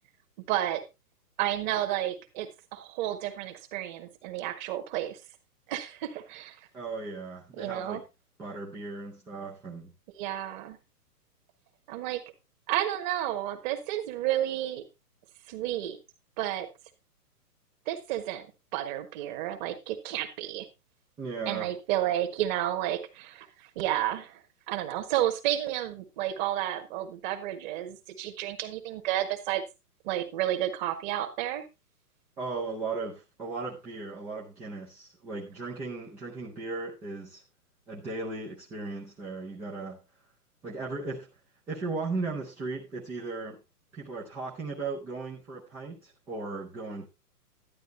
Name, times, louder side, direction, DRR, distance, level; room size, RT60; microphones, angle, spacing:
voice 1, 0.5-0.8 1.4-5.2 5.7-6.6 7.6-8.0 10.2-10.8 11.9-12.2 12.7-14.8 15.5-16.0 16.4-16.7 17.9-18.5 18.7-20.7 21.4-24.4 24.7-29.6 30.0-31.6, right 13 dB, 30° right, 1.5 m, -31 dB
voice 2, 6.7-8.1 8.4-9.9 21.2-21.7 32.4-37.4 37.9-40.0 40.6-41.3 41.7-43.6 43.9-47.1, right 3 dB, 5° right, 0.5 m, -36 dB
11.5 x 9.2 x 3.3 m
hypercardioid pair, 145°, 47 cm